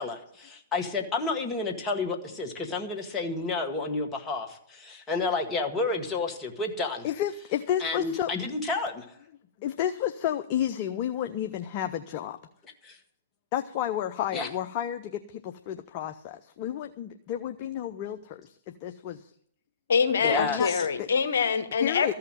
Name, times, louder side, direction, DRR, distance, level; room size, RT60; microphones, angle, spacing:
voice 1, 0.0-7.1 7.8-9.1 12.8-13.0 14.3-14.5 20.2-20.8, left 3 dB, 20° left, 2 dB, 1.9 m, -30 dB
voice 2, 7.0-8.3 9.6-12.4 13.5-19.3 20.4-21.1 21.8-22.1, left 11 dB, 40° left, 8 dB, 0.6 m, -31 dB
voice 3, 19.9-22.1, left 6 dB, 65° left, 8 dB, 1.1 m, -25 dB
14.5 x 5.8 x 9.0 m, 0.67 s
figure-of-eight pair, 120°, 0 cm